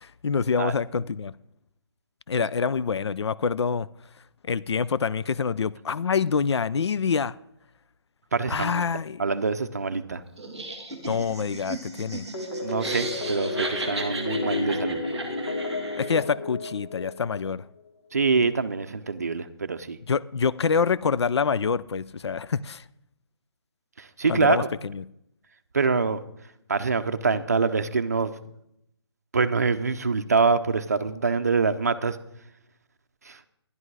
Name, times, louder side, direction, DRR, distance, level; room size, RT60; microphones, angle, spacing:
voice 1, 0.0-1.3 2.3-3.9 4.5-7.3 8.5-9.2 11.1-12.3 16.0-17.6 20.1-22.8 24.3-25.0, left 5 dB, 75° left, 18 dB, 0.5 m, -26 dB
voice 2, 8.3-8.8 9.2-10.2 12.6-15.0 18.1-20.0 24.0-24.6 25.7-26.2 26.7-28.3 29.3-32.2 33.3-33.4, right 4 dB, 40° right, 9 dB, 0.7 m, -25 dB
Laughter, 10.4-16.2, right 2 dB, ahead, 0.5 m, -36 dB
sound 1, 12.3-17.5, left 2 dB, 55° left, 3.0 m, -31 dB
11.0 x 11.0 x 4.7 m, 0.78 s
hypercardioid pair, 180°, 14 cm